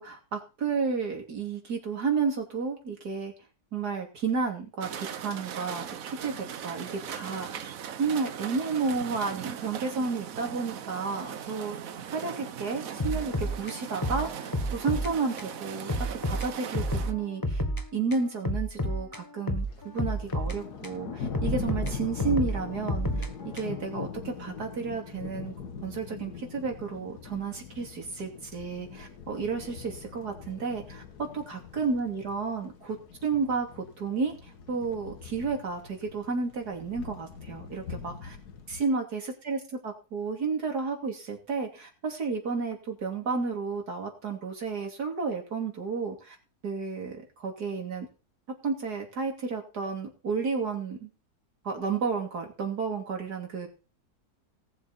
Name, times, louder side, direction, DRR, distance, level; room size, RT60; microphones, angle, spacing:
voice 1, 0.0-3.3 3.7-7.7 8.0-11.8 12.1-15.9 16.2-17.6 17.9-25.5 25.8-38.4 38.7-46.4 46.6-48.1 48.5-51.1 51.6-53.7, right 5 dB, 85° right, 2 dB, 3.4 m, -32 dB
sound 1, 4.8-17.1, right 8 dB, 65° right, 1.2 m, -39 dB
sound 2, 13.0-15.1 15.4-15.5 15.9-17.8 18.1-21.0 21.3-23.9, equal, 15° left, 1.1 m, -31 dB
Thunder, 19.6-38.8, left 6 dB, 85° left, 1.9 m, -41 dB
18.5 x 7.3 x 4.2 m, 0.32 s
omnidirectional pair, 1.7 m